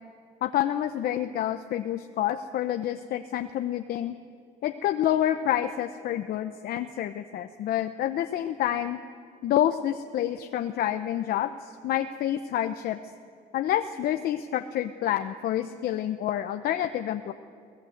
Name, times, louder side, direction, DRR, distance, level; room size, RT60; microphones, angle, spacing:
voice 1, 0.4-4.1 4.6-9.0 9.4-13.0 13.5-17.3, left 11 dB, 65° left, 8 dB, 0.8 m, -28 dB
22.5 x 17.0 x 7.9 m, 2.3 s
cardioid pair, 110°, 17 cm